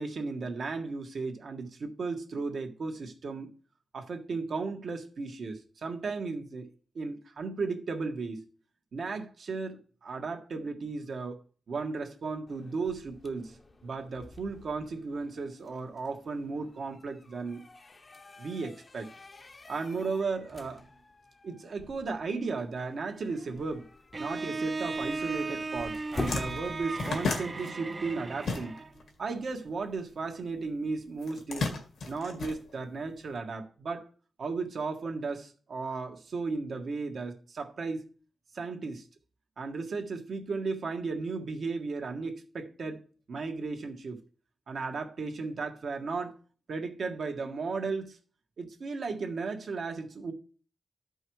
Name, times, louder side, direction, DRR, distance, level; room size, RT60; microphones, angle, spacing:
voice 1, 0.0-3.5 3.9-6.7 6.9-8.4 8.9-11.4 11.7-13.6 13.8-17.6 18.4-19.1 19.7-20.9 21.4-23.9 24.2-28.7 29.2-31.7 32.1-34.1 34.4-38.1 38.5-39.1 39.6-43.0 43.3-44.2 44.7-46.4 46.7-48.2 48.6-50.3, right 4 dB, 70° right, 1.6 m, -35 dB
sound 1, 12.5-27.5, left 2 dB, 40° left, 0.9 m, -46 dB
Bowed string instrument, 24.1-29.0, right 3 dB, 40° right, 0.7 m, -36 dB
sound 2, 25.5-25.7 25.9-29.1 29.3-30.5 31.2-33.2, left 3 dB, 85° left, 2.2 m, -34 dB
13.0 x 5.5 x 4.8 m
cardioid pair, 80°, 0 cm